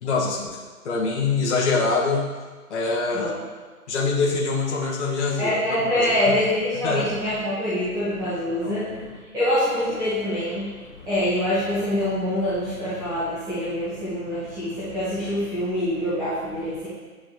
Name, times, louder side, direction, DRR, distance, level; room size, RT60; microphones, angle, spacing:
voice 1, 0.0-0.6 0.8-2.3 2.7-3.3 3.9-6.3 6.8-7.1 8.6-9.2, left 4 dB, 50° left, -4 dB, 1.3 m, -25 dB
voice 2, 5.4-16.9, left 1 dB, 10° right, -13 dB, 1.4 m, -25 dB
10.5 x 4.9 x 3.1 m, 1.4 s
figure-of-eight pair, 140°, 45 cm